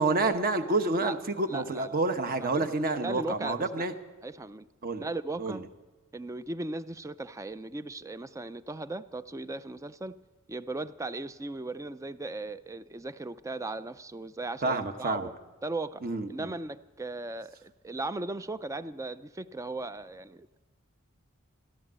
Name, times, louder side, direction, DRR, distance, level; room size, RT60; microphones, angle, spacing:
voice 1, 0.0-3.9 4.8-5.1 5.4-5.6 14.6-15.3 16.0-16.5, right 3 dB, 45° right, 8 dB, 1.0 m, -28 dB
voice 2, 1.5-2.0 2.4-2.7 3.0-3.9 4.2-4.7 5.0-5.6 6.1-10.1 10.5-15.3 15.6-16.0 16.3-20.5, right 2 dB, 15° right, 14 dB, 0.4 m, -37 dB
14.0 x 13.0 x 7.4 m, 1.2 s
head